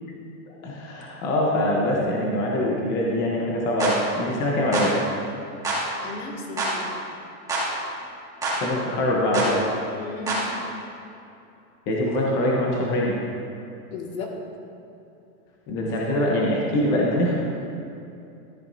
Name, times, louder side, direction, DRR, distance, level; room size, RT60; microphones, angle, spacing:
voice 1, 0.6-5.0 8.5-9.6 11.9-13.1 15.7-17.3, left 1 dB, 20° left, -3 dB, 0.9 m, -23 dB
sound 1, 3.8-4.0 4.7-4.9 5.6-5.8 6.6-6.8 7.5-7.7 8.4-8.6 9.3-9.5 10.3-10.5, right 2 dB, 10° right, 2.0 m, -25 dB
voice 2, 6.0-7.1 10.0-10.5 13.9-14.3, left 3 dB, 65° left, 0 dB, 2.0 m, -35 dB
13.5 x 11.5 x 2.7 m, 2.7 s
supercardioid pair, 175°, 44 cm